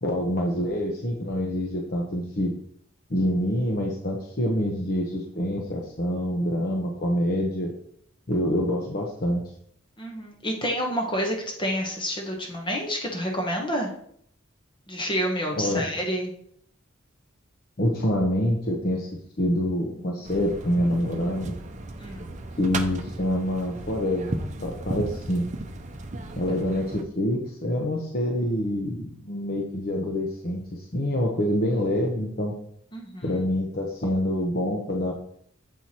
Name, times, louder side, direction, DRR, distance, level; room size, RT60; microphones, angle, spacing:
voice 1, 0.0-2.5 3.1-7.7 8.3-9.4 15.5-15.9 17.8-19.1 19.4-21.6 22.6-24.3 24.6-25.5 26.4-32.5 33.2-35.1, left 1 dB, 50° left, 0 dB, 0.8 m, -26 dB
voice 2, 10.0-13.9 14.9-16.3 22.0-22.3 32.9-33.3, equal, 25° left, 1 dB, 1.0 m, -29 dB
sound 1, 20.2-27.0, right 2 dB, 40° right, 0.7 m, -35 dB
7.6 x 4.6 x 4.2 m, 0.67 s
head